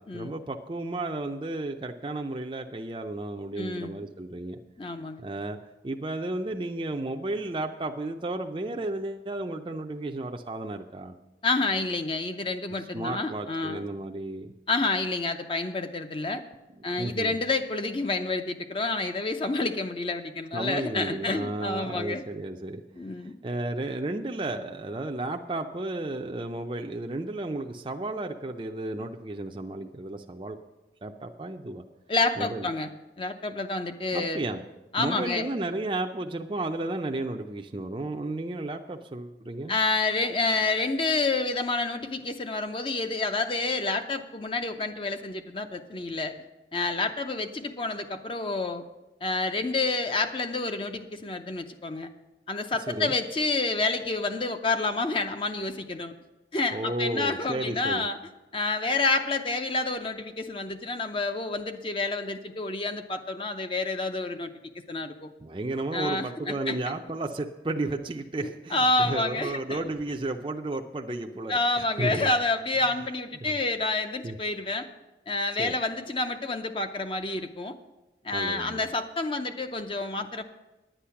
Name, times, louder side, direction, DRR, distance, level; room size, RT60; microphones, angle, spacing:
voice 1, 0.1-4.6 5.2-5.6 5.8-11.2 12.8-14.5 17.0-17.4 20.5-22.8 23.2-30.6 31.0-31.8 32.4-32.7 34.1-34.6 35.0-39.8 52.9-53.1 56.7-58.1 65.4-72.3 73.5-73.6 74.2-74.4 75.6-75.7 78.3-78.8, right 2 dB, 30° right, 3 dB, 0.4 m, -33 dB
voice 2, 3.6-4.0 4.8-5.2 11.4-13.8 14.7-16.4 16.8-22.2 23.0-23.3 32.1-32.9 33.2-34.5 34.9-35.5 39.7-46.4 46.7-48.8 49.2-52.1 52.5-56.1 56.5-58.2 58.5-64.5 64.9-65.3 65.9-66.8 68.4-69.9 71.1-74.9 75.3-77.8 78.2-80.4, left 3 dB, 30° left, 8 dB, 0.6 m, -29 dB
10.0 x 9.2 x 5.8 m, 1.0 s
head